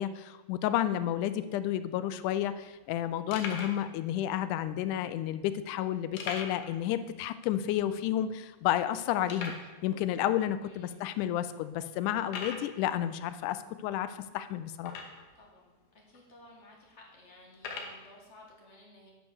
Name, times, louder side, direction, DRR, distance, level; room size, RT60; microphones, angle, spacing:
voice 1, 0.0-9.5 9.8-14.9, left 11 dB, 90° left, 12 dB, 2.1 m, -31 dB
sound 1, 2.3-2.4 2.8-2.9 3.3-3.8 4.6-4.7 6.2-6.8 7.0-7.1 7.6-7.7 8.3-8.4 9.3-9.7 10.5-10.6 11.2-11.3 12.2-12.7 14.8-15.4 16.1-16.2 17.5-18.0, left 4 dB, 70° left, 2.3 m, -40 dB
voice 2, 10.6-10.9 15.3-19.1, left 1 dB, 45° left, -1 dB, 0.8 m, -56 dB
8.8 x 5.3 x 6.1 m, 1.2 s
omnidirectional pair, 3.5 m